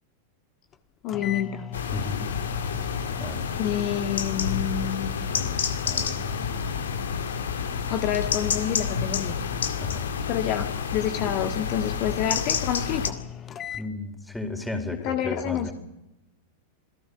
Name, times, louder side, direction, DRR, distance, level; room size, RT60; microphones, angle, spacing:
sound 1, 0.7-0.8 1.1-13.9, left 10 dB, 25° left, 1.5 m, -40 dB
voice 1, 1.0-1.7 3.6-5.1 7.9-9.3 10.3-13.2 15.0-15.7, left 10 dB, 40° left, 6 dB, 1.7 m, -28 dB
sound 2, 1.7-13.1, left 6 dB, 65° left, 2.2 m, -29 dB
voice 2, 1.9-2.3 3.2-3.5 5.4-6.5 8.4-8.5 9.8-10.2 13.8-15.7, left 2 dB, 5° left, 6 dB, 4.2 m, -35 dB
28.0 x 18.0 x 6.8 m, 0.90 s
figure-of-eight pair, 90°, 0 cm